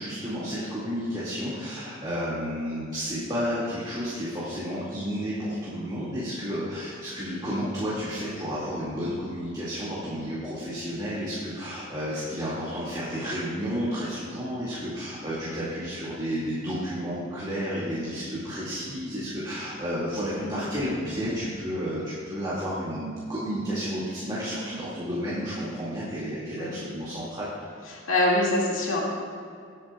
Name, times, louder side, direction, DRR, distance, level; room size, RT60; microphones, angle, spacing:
voice 1, 0.0-27.5, equal, 20° right, -9 dB, 2.2 m, -31 dB
voice 2, 20.3-20.6 26.6-26.8 27.9-29.0, left 1 dB, 85° left, -4 dB, 2.1 m, -25 dB
18.5 x 8.6 x 2.4 m, 2.3 s
head